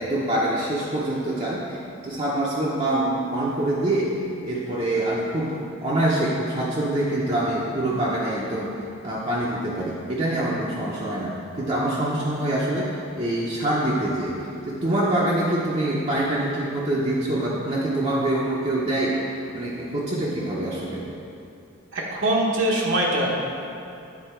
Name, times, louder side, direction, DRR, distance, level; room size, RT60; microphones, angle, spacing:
voice 1, 0.0-5.6 5.8-8.7 9.0-19.2 19.5-21.0, right 1 dB, 30° right, -6 dB, 0.6 m, -25 dB
voice 2, 21.9-23.3, right 1 dB, 65° right, -3 dB, 0.9 m, -22 dB
8.8 x 3.8 x 4.4 m, 2.7 s
head